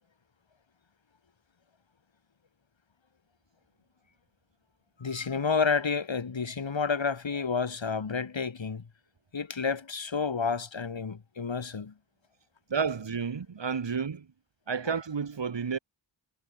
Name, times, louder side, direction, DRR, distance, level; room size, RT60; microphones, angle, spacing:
voice 1, 5.0-8.9 9.3-11.9, left 5 dB, 85° left, 6.5 m, -30 dB
voice 2, 12.7-14.3 14.7-15.8, right 6 dB, 75° right, 2.2 m, -31 dB
wide cardioid pair, 80°, 44 cm